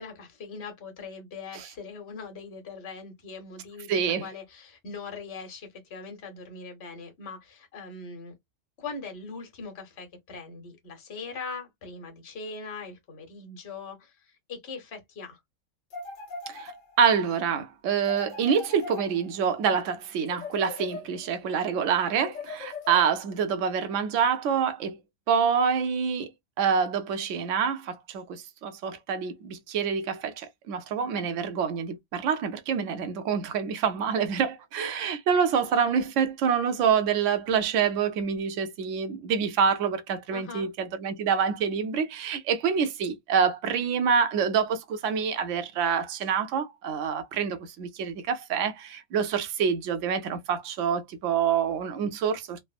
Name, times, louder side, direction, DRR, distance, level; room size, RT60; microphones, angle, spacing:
voice 1, 0.0-8.3 8.8-15.4 40.3-40.7, left 4 dB, 55° left, 1.3 m, -41 dB
voice 2, 3.9-4.3 16.5-16.7 17.0-25.0 25.3-26.3 26.6-52.6, right 7 dB, 70° right, 1.0 m, -26 dB
sound 1, 15.9-17.2 18.0-19.6 20.3-21.4 22.2-23.4, left 3 dB, 80° left, 1.3 m, -40 dB
3.3 x 2.0 x 2.3 m
omnidirectional pair, 1.4 m